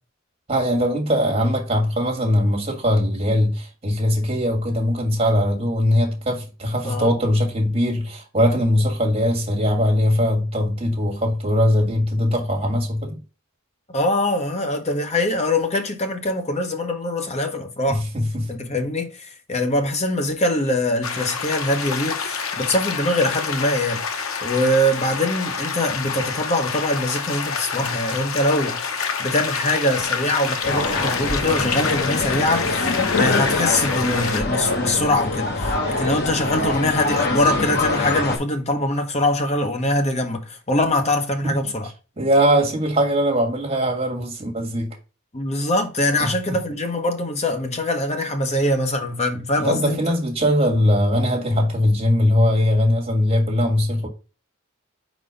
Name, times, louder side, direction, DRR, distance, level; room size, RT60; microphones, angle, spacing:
voice 1, 0.5-13.2 17.9-18.5 41.4-41.6 42.2-45.0 46.2-46.6 49.6-54.1, equal, 30° right, 2.0 m, -20 dB
voice 2, 13.9-18.0 18.5-24.0 24.4-41.9 45.3-50.0, left 1 dB, 30° left, 1.0 m, -23 dB
sound 1, 21.0-34.4, left 5 dB, 75° left, 0.9 m, -28 dB
sound 2, 30.6-38.4, left 3 dB, 50° left, 1.3 m, -24 dB
4.6 x 4.1 x 5.0 m
head